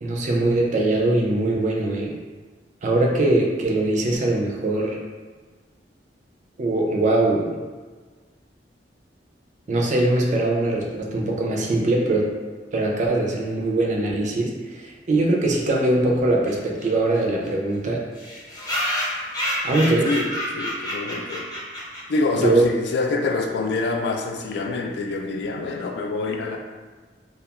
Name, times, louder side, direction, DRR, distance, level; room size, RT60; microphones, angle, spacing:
voice 1, 0.0-2.1 2.8-5.0 6.6-7.5 9.7-12.3 12.7-18.1 19.6-20.1 22.4-22.6, right 2 dB, 45° right, -1 dB, 0.4 m, -21 dB
sound 1, 16.5-16.6 16.8-16.9 17.1-17.2 17.4-17.5 18.2-22.4, equal, 20° left, 0.6 m, -29 dB
voice 2, 20.1-21.5 22.1-26.6, left 3 dB, 70° left, 3 dB, 0.3 m, -26 dB
2.3 x 2.3 x 2.8 m, 1.4 s
head